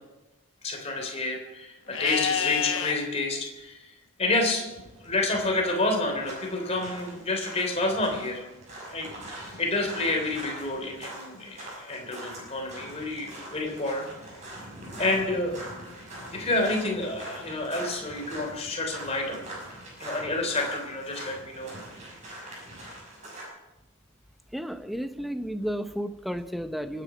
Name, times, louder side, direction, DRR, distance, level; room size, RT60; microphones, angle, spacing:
voice 1, 0.6-3.9 4.2-4.7 5.0-8.4 8.8-9.1 9.6-14.1 15.0-15.6 16.3-19.4 20.0-21.8, left 2 dB, 30° left, 2 dB, 3.4 m, -29 dB
Livestock farm animals working animals, 1.9-3.0 5.8-6.8, left 8 dB, 65° left, 1.1 m, -30 dB
sound 1, 4.7-23.4, right 1 dB, 35° right, 6.5 m, -43 dB
voice 2, 24.5-27.0, equal, ahead, 8 dB, 0.7 m, -32 dB
24.0 x 10.0 x 5.1 m, 1.0 s
head